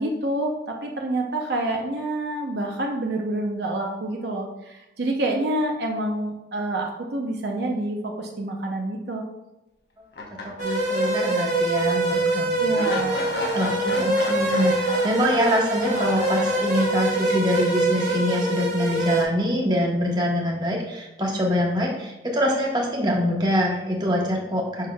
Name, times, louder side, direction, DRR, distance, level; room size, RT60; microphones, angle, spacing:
voice 1, 0.0-9.2 12.6-13.2, right 1 dB, 65° right, 1 dB, 0.7 m, -27 dB
sound 1, 10.1-11.4 11.8-11.9 12.7-17.0, left 2 dB, 65° left, 1.0 m, -33 dB
voice 2, 10.6-12.6 13.5-24.9, equal, 25° right, -2 dB, 1.1 m, -24 dB
sound 2, 10.6-19.2, right 2 dB, 40° right, 1.4 m, -24 dB
6.5 x 6.2 x 2.3 m, 0.95 s
head